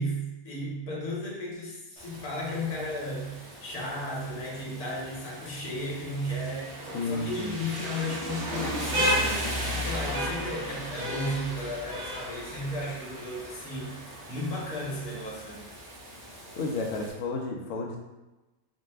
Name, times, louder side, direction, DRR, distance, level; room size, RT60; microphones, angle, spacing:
voice 1, 0.0-14.0 14.3-15.7, left 1 dB, 85° left, -3 dB, 1.4 m, -34 dB
Rain, 2.0-17.1, equal, 55° right, 1.2 m, -35 dB
voice 2, 6.9-7.6 16.6-18.0, left 3 dB, 65° left, 0 dB, 0.8 m, -32 dB
4.0 x 2.2 x 3.3 m, 1.0 s
omnidirectional pair, 1.6 m